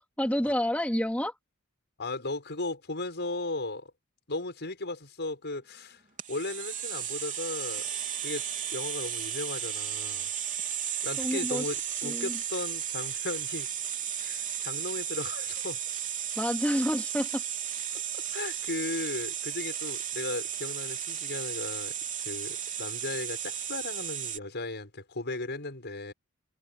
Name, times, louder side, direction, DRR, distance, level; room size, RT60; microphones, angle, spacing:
voice 1, 0.0-1.3 11.2-11.7 12.0-12.4 16.4-17.4, equal, 5° left, 3.3 m, -29 dB
voice 2, 2.0-3.9 4.3-6.0 6.3-7.9 8.2-10.3 11.0-13.7 14.2-15.8 18.1-21.9 22.2-26.1, left 2 dB, 50° left, 6.8 m, -36 dB
sound 1, 6.2-24.4, right 9 dB, 35° right, 3.7 m, -34 dB
head